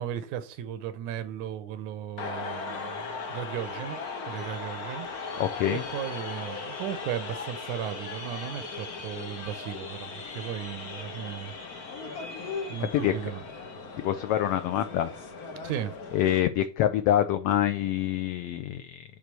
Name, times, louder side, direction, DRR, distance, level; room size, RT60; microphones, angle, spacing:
voice 1, 0.0-4.0 4.3-5.1 5.7-11.6 12.7-13.4 15.6-15.9, right 10 dB, 85° right, 2.3 m, -36 dB
sound 1, 2.2-16.4, left 4 dB, 45° left, 1.2 m, -38 dB
voice 2, 5.4-5.8 12.9-13.1 14.0-15.1 16.1-19.0, left 11 dB, 85° left, 1.3 m, -26 dB
9.5 x 3.5 x 6.7 m
omnidirectional pair, 3.3 m